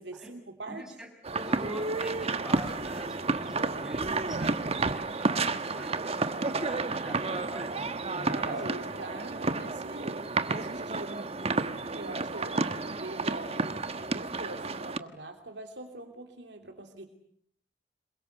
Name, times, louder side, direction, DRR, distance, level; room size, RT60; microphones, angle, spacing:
voice 1, 0.0-0.9 4.0-4.6 8.3-11.3 11.8-13.6 13.9-17.1, right 2 dB, 70° right, 4 dB, 3.0 m, -43 dB
voice 2, 0.7-4.5 5.0-8.8, equal, ahead, 3 dB, 6.3 m, -44 dB
sound 1, 1.2-15.0, right 3 dB, 35° right, 1.3 m, -31 dB
27.5 x 23.0 x 8.1 m, 0.67 s
head